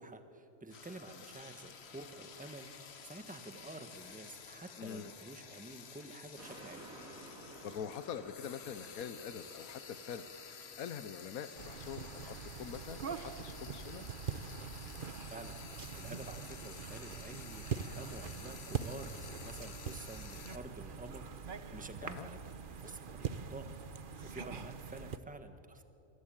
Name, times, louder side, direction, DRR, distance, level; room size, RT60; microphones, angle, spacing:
voice 1, 0.0-6.8 15.3-15.6 15.9-22.4 22.8-23.7 24.2-25.8, right 2 dB, 5° right, 7 dB, 1.4 m, -49 dB
Frying (food), 0.7-20.6, left 6 dB, 50° left, 1.3 m, -52 dB
voice 2, 4.8-5.1 7.6-10.3 10.8-14.0 22.0-22.3, left 8 dB, 80° left, 10 dB, 1.3 m, -44 dB
sound 1, 6.4-13.0 13.4-13.5, right 1 dB, 75° right, 4.4 m, -55 dB
sound 2, 11.6-25.2, right 6 dB, 45° right, 1.0 m, -43 dB
27.0 x 24.0 x 8.9 m, 2.9 s
omnidirectional pair, 1.5 m